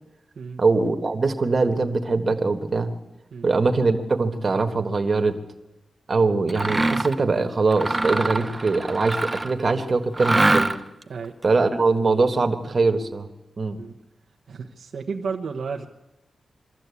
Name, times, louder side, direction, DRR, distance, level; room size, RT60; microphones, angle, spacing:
voice 1, 0.6-2.9 3.4-5.4 6.1-10.7 11.4-13.3 13.6-13.8, right 3 dB, 40° right, 5 dB, 1.5 m, -22 dB
Mechanisms, 6.5-7.2 7.7-9.6 10.1-11.0, right 2 dB, 20° right, 0.8 m, -23 dB
voice 2, 14.5-15.9, right 5 dB, 75° right, 2 dB, 1.1 m, -32 dB
23.0 x 13.5 x 8.4 m, 1.0 s
wide cardioid pair, 125°, 0 cm